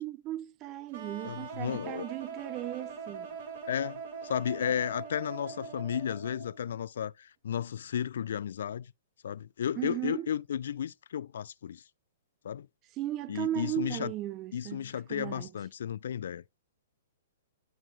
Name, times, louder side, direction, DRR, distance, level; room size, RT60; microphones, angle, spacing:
voice 1, 0.0-3.3 9.8-10.3 13.0-15.5, right 14 dB, 35° right, 0.4 m, -36 dB
sound 1, 0.9-6.7, right 5 dB, 50° right, 1.9 m, -42 dB
voice 2, 1.2-2.1 3.7-8.9 9.2-11.8 12.4-12.7 13.3-14.1 14.5-16.4, left 9 dB, 65° left, 0.3 m, -33 dB
11.5 x 6.0 x 2.2 m
hypercardioid pair, 120°, 0 cm